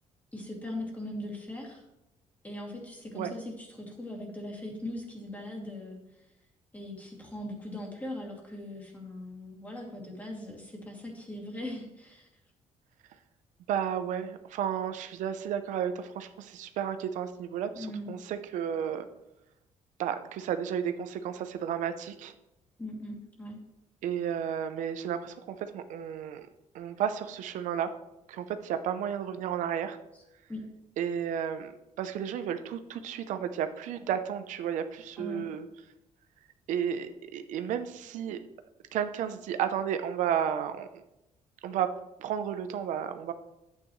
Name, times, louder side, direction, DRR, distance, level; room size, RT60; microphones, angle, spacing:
voice 1, 0.3-1.8 2.4-6.0 6.7-12.3 17.7-18.1 22.8-23.6 30.5-30.6 35.2-35.4, left 1 dB, 10° left, -1 dB, 2.5 m, -40 dB
voice 2, 13.7-19.1 20.0-22.3 24.0-26.5 26.7-27.9 28.3-30.0 31.0-35.7 36.7-38.4 38.9-41.0 41.6-41.9 42.2-43.3, right 9 dB, 85° right, 9 dB, 0.7 m, -32 dB
10.5 x 8.7 x 3.1 m, 0.89 s
cardioid pair, 135°, 12 cm